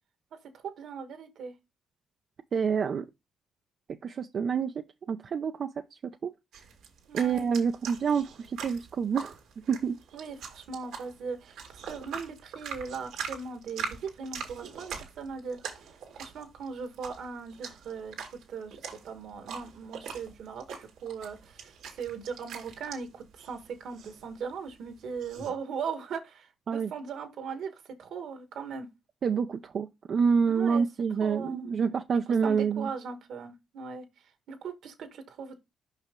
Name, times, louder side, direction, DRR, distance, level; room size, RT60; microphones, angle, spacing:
voice 1, 0.5-1.5 7.1-7.5 10.1-15.6 16.1-18.8 19.0-28.9 30.4-30.8 31.2-32.0 32.4-34.0 34.5-35.6, right 5 dB, 70° right, 1.7 m, -39 dB
voice 2, 2.5-3.1 4.0-4.7 5.1-5.7 6.2-6.3 7.1-9.4 9.7-10.0 26.7-26.9 29.2-32.9, right 6 dB, 50° right, 0.6 m, -27 dB
sound 1, 6.5-25.5, right 6 dB, 85° right, 2.3 m, -43 dB
5.7 x 5.6 x 3.8 m
cardioid pair, 90°, 0 cm